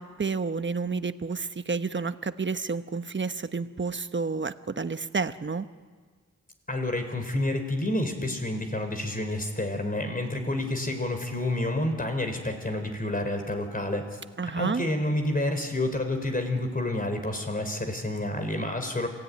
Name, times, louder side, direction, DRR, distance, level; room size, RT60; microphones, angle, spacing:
voice 1, 0.0-5.7 14.4-14.8, right 4 dB, 35° right, 11 dB, 1.1 m, -30 dB
voice 2, 6.7-14.2 14.5-19.1, left 1 dB, 30° left, 6 dB, 4.5 m, -29 dB
27.5 x 17.0 x 9.7 m, 1.5 s
wide cardioid pair, 75°, 31 cm